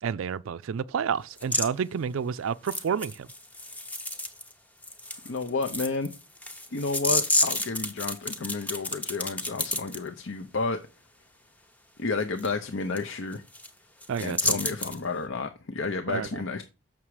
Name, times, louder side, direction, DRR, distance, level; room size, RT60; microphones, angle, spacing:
voice 1, 0.0-3.3 14.1-14.6 16.1-16.4, right 7 dB, 75° right, 0.4 m, -30 dB
sound 1, 1.4-1.7 2.6-4.5 4.8-10.0 12.4-12.5 13.0-13.1 13.3-13.7 14.0-15.0, left 1 dB, 5° left, 0.6 m, -30 dB
voice 2, 5.2-6.1 6.7-10.8 12.0-13.4 14.2-16.6, left 3 dB, 65° left, 0.7 m, -31 dB
7.2 x 6.0 x 4.8 m
head